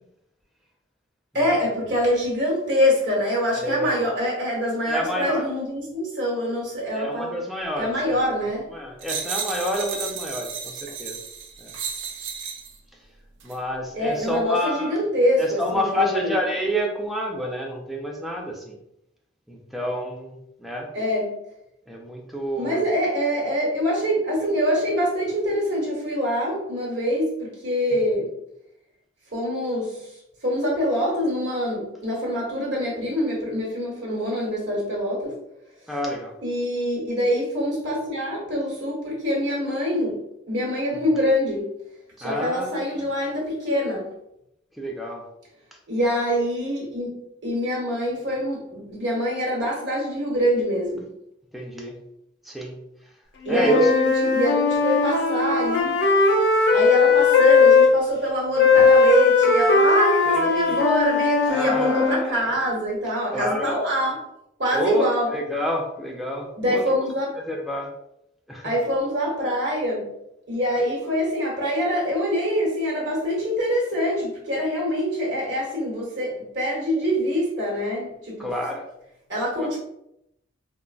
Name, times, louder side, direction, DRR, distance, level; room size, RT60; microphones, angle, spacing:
voice 1, 1.3-7.4 7.8-8.6 13.9-16.3 20.9-21.3 22.5-28.3 29.3-30.0 30.4-35.3 36.4-40.2 40.5-41.7 42.2-44.1 45.9-47.1 47.4-51.1 53.4-56.0 56.7-64.2 64.6-65.3 66.6-67.4 68.6-70.1 70.5-78.5 79.3-79.8, equal, 65° right, -3 dB, 1.2 m, -24 dB
voice 2, 3.6-4.0 4.9-5.5 6.9-8.2 8.7-11.2 11.6-11.7 13.4-14.9 15.4-18.8 19.5-20.9 21.9-22.8 35.9-36.3 42.2-43.1 44.8-45.2 51.5-52.0 52.5-52.8 53.5-53.9 60.3-60.8 61.5-62.5 63.3-63.8 64.7-66.8 67.5-67.9 68.5-68.7 78.4-78.8 79.6-79.7, equal, ahead, 0 dB, 0.4 m, -29 dB
sound 1, 9.0-12.8 13.4-13.6, right 6 dB, 85° right, 0.5 m, -33 dB
Wind instrument woodwind instrument, 53.5-57.9 58.6-62.3, left 4 dB, 60° left, 0.5 m, -18 dB
3.6 x 2.1 x 2.3 m, 0.79 s
head